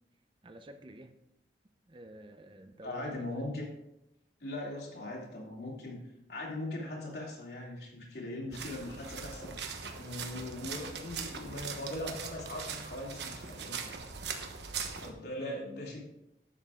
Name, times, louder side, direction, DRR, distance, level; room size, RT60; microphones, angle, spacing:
voice 1, 0.4-1.2 1.9-3.6 15.4-15.6, right 1 dB, 30° right, 8 dB, 0.6 m, -50 dB
voice 2, 2.8-3.6 4.4-6.0 6.3-9.6 10.0-13.8 15.0-16.0, left 1 dB, 75° left, -3 dB, 2.9 m, -40 dB
sound 1, 8.5-15.1, right 6 dB, 85° right, 1.1 m, -41 dB
11.0 x 7.7 x 3.7 m, 0.84 s
head